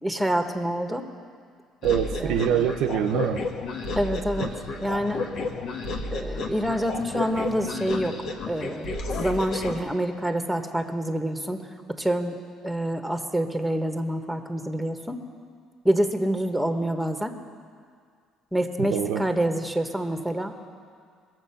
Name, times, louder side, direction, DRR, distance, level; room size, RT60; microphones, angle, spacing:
voice 1, 0.0-1.0 2.2-2.8 3.9-4.5 4.8-5.3 6.1-8.2 8.5-8.9 9.2-12.4 12.6-15.2 15.8-17.3 18.5-20.5, right 1 dB, ahead, 6 dB, 1.3 m, -27 dB
sound 1, 1.8-9.8, left 3 dB, 65° left, 1.3 m, -32 dB
voice 2, 1.8-3.4 4.4-4.5 18.8-19.3, right 9 dB, 75° right, 5 dB, 0.6 m, -24 dB
20.5 x 7.3 x 5.8 m, 2.1 s
supercardioid pair, 75°, 0 cm